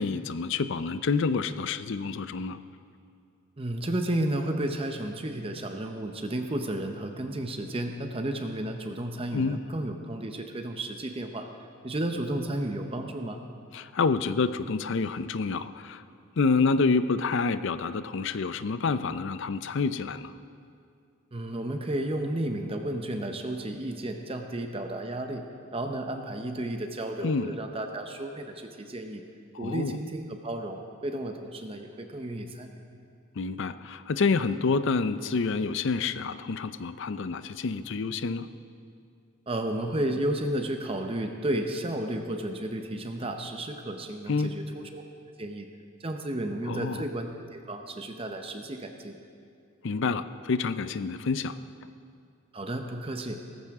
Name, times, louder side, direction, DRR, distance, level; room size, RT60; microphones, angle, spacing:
voice 1, 0.0-2.6 9.3-9.6 13.7-16.0 16.4-20.3 27.2-27.5 29.5-30.0 33.4-38.5 44.3-44.6 46.7-47.1 49.8-51.6, left 4 dB, 60° left, 13 dB, 0.5 m, -28 dB
voice 2, 3.6-11.5 11.8-13.4 21.3-25.4 25.7-29.2 29.6-32.8 39.5-45.0 45.4-45.7 46.0-49.2 52.5-53.4, right 1 dB, 25° right, 5 dB, 0.7 m, -32 dB
18.0 x 14.5 x 3.6 m, 2.3 s
head